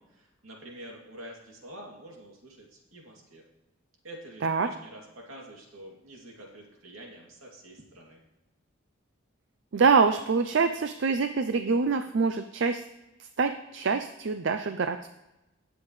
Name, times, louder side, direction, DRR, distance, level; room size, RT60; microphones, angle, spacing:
voice 1, 0.0-3.4 4.0-8.2, right 1 dB, 80° right, -1 dB, 2.7 m, -47 dB
voice 2, 9.7-12.8 13.2-15.1, right 5 dB, 60° right, 9 dB, 0.5 m, -25 dB
18.0 x 7.1 x 3.2 m, 0.98 s
head